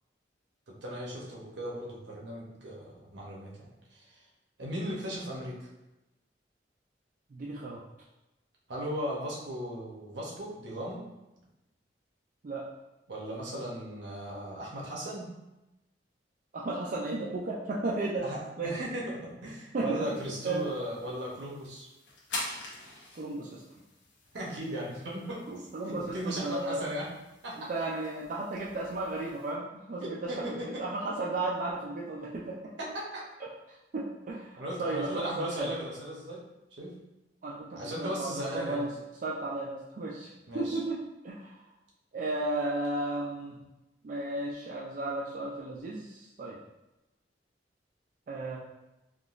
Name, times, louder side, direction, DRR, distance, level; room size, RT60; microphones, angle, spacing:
voice 1, 0.7-4.2 4.6-5.7 8.7-11.0 13.1-15.3 18.2-21.9 24.3-27.1 27.4-27.7 29.9-30.8 32.8-33.2 34.6-36.4 36.7-36.9 37.7-38.8 40.5-40.8, equal, 80° right, -4 dB, 0.9 m, -37 dB
voice 2, 7.3-7.8 12.4-12.6 16.5-18.2 18.6-18.8 19.7-20.0 20.4-20.6 23.2-23.6 25.5-26.8 27.7-32.6 33.9-35.7 37.4-38.9 39.2-40.3 40.5-41.0 41.2-41.6 42.1-43.6 44.0-46.6 48.3-48.6, right 2 dB, 45° right, -4 dB, 0.3 m, -34 dB
sound 1, 20.0-29.5, left 2 dB, 85° left, 0.7 m, -46 dB
3.6 x 2.3 x 2.5 m, 0.96 s
head